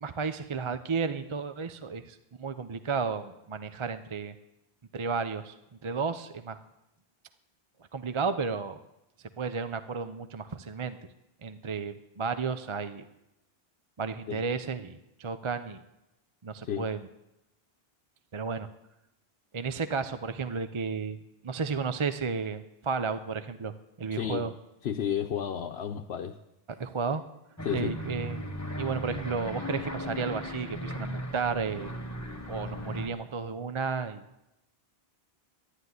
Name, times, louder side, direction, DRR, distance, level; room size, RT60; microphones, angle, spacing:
voice 1, 0.0-4.3 4.9-5.5 5.8-6.6 7.9-8.8 9.4-11.0 11.4-13.1 14.0-15.8 16.4-17.1 18.3-18.7 19.5-24.5 26.8-27.2 27.7-31.9 32.5-34.2, right 5 dB, 35° right, 10 dB, 0.6 m, -33 dB
voice 2, 24.1-24.5 24.8-26.4 27.6-27.9, left 9 dB, 80° left, 3 dB, 1.0 m, -32 dB
sound 1, 27.6-33.1, equal, 15° left, 1.4 m, -37 dB
11.5 x 11.5 x 9.5 m, 0.92 s
omnidirectional pair, 1.0 m